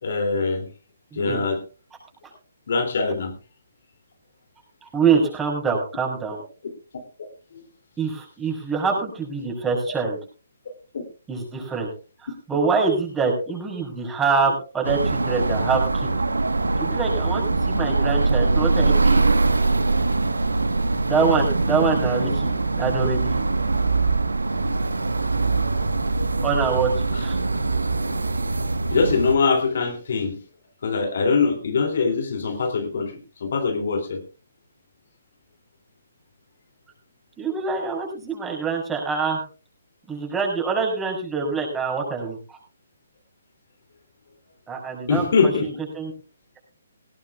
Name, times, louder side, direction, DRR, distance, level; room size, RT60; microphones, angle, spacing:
voice 1, 0.0-0.7 1.2-1.6 2.7-3.3 10.9-11.0 24.7-24.9 27.1-27.2 28.9-30.4 30.8-34.2 45.1-45.7, left 4 dB, 55° left, 5 dB, 2.6 m, -23 dB
voice 2, 4.8-6.4 8.0-10.2 11.3-11.9 12.2-16.1 16.8-19.2 21.0-23.4 26.4-26.9 27.2-27.4 37.4-39.4 40.1-42.6 44.7-45.7 45.9-46.1, right 5 dB, 10° right, 1 dB, 5.6 m, -25 dB
sound 1, 14.8-29.4, right 3 dB, 85° right, 1.2 m, -22 dB
18.5 x 17.5 x 2.3 m, 0.33 s
figure-of-eight pair, 135°, 0 cm